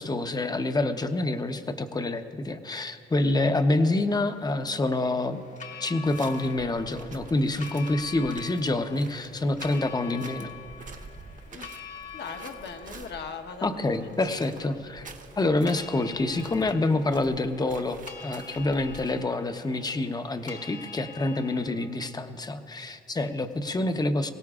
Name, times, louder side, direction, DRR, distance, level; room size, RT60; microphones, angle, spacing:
voice 1, 0.0-5.4 5.8-10.5 13.6-24.3, left 2 dB, 20° left, 8 dB, 0.8 m, -27 dB
sound 1, 4.0-21.7, left 6 dB, 40° left, 1.2 m, -46 dB
sound 2, 6.0-19.2, right 4 dB, 40° right, 1.2 m, -48 dB
voice 2, 12.1-14.4, left 5 dB, 60° left, 5 dB, 1.2 m, -40 dB
22.5 x 17.0 x 2.4 m, 2.5 s
cardioid pair, 90°, 20 cm